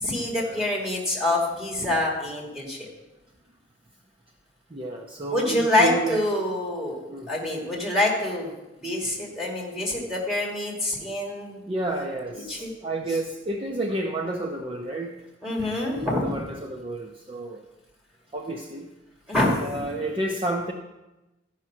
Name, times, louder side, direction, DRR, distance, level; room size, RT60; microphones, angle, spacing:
voice 1, 0.0-2.9 5.3-7.0 7.3-8.5 8.8-11.6 12.3-12.7 15.4-16.3 19.3-19.5, left 1 dB, 5° right, -3 dB, 2.7 m, -26 dB
voice 2, 4.7-6.3 7.1-7.3 11.7-15.2 16.0-17.7 18.3-18.9 19.6-20.7, right 2 dB, 30° right, 0 dB, 0.7 m, -30 dB
13.0 x 5.8 x 6.1 m, 1.0 s
head